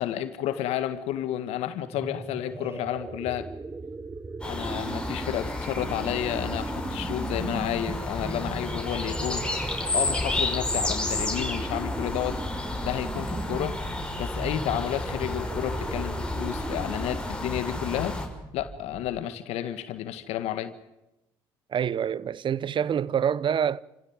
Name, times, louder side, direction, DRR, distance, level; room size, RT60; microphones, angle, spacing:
voice 1, 0.0-3.5 4.4-9.5 9.9-13.8 14.2-18.2 18.5-20.7, left 11 dB, 75° left, 1.8 m, -31 dB
sound 1, 1.8-19.4, right 3 dB, 20° right, 1.3 m, -38 dB
sound 2, 4.4-18.3, left 2 dB, 10° left, 6.2 m, -31 dB
voice 2, 21.7-23.8, right 8 dB, 50° right, 0.9 m, -26 dB
29.0 x 16.0 x 8.9 m
hypercardioid pair, 60°, 11 cm